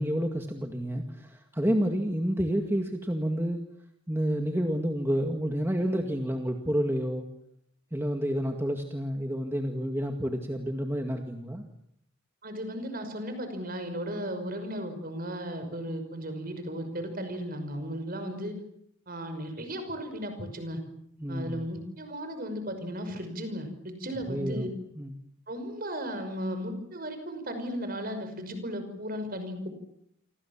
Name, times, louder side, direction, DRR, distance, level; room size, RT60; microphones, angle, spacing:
voice 1, 0.0-3.6 4.1-7.3 7.9-11.6 21.2-21.6 24.2-24.7 25.0-25.1, equal, 10° right, 4 dB, 2.0 m, -29 dB
voice 2, 12.4-18.5 19.1-20.8 21.3-24.7 25.5-29.7, equal, 40° right, 8 dB, 5.9 m, -35 dB
29.0 x 24.5 x 7.4 m, 0.73 s
head